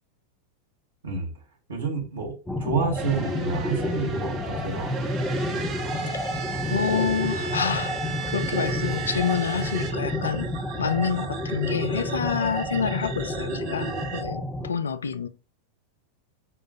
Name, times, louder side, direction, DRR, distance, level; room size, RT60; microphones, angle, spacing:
voice 1, 1.7-2.3 2.6-4.9, right 4 dB, 70° right, 1.5 m, -29 dB
sound 1, 2.5-14.7, left 1 dB, 10° left, 0.6 m, -30 dB
sound 2, 3.0-9.9, right 7 dB, 25° right, 1.0 m, -35 dB
sound 3, 4.9-14.2, right 4 dB, 45° right, 1.2 m, -39 dB
voice 2, 6.7-8.0 8.3-10.5 10.8-15.3, left 6 dB, 70° left, 0.3 m, -27 dB
6.3 x 2.5 x 2.5 m
figure-of-eight pair, 90°, 0 cm